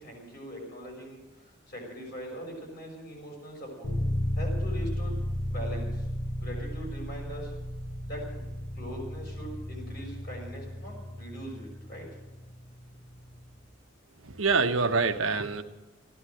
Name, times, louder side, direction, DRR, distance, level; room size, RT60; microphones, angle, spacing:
voice 1, 0.0-3.9 4.4-5.1 5.5-6.1 6.4-7.5 8.0-8.4 8.7-12.1, equal, 45° left, 0 dB, 6.3 m, -41 dB
sound 1, 3.8-13.6, left 1 dB, 85° left, 3.6 m, -34 dB
voice 2, 14.2-15.6, right 4 dB, 70° right, 7 dB, 1.1 m, -25 dB
14.5 x 11.5 x 7.7 m, 1.1 s
head